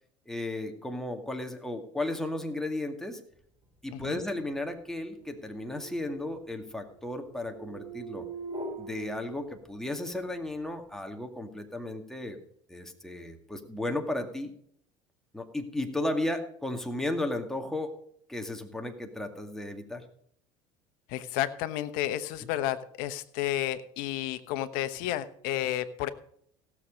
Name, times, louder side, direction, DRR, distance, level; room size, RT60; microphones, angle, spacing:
voice 1, 0.3-3.2 3.8-8.3 8.8-12.4 12.7-14.5 15.3-17.9 18.3-20.1, left 1 dB, 5° left, 4 dB, 2.2 m, -34 dB
sound 1, 3.6-10.1, right 3 dB, 35° right, 4.5 m, -44 dB
voice 2, 21.1-26.1, left 13 dB, 70° left, 12 dB, 1.1 m, -31 dB
16.5 x 7.2 x 5.2 m, 0.66 s
hypercardioid pair, 80°, 16 cm